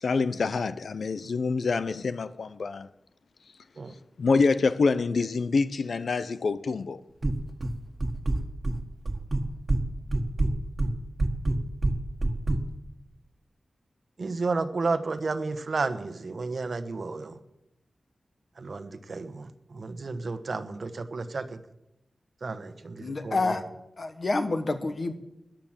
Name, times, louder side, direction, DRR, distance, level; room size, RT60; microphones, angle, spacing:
voice 1, 0.0-2.9 4.2-7.0, left 4 dB, 75° left, 0.7 m, -26 dB
sound 1, 7.2-7.7 8.0-8.8 9.0-9.8 10.1-12.6, right 2 dB, 35° right, 1.5 m, -25 dB
voice 2, 14.2-17.4 18.6-21.6 22.4-23.4, right 3 dB, 60° right, 1.1 m, -32 dB
voice 3, 23.0-23.7 24.0-25.1, left 3 dB, 50° left, 1.4 m, -28 dB
14.0 x 10.5 x 7.4 m
wide cardioid pair, 90°, 0 cm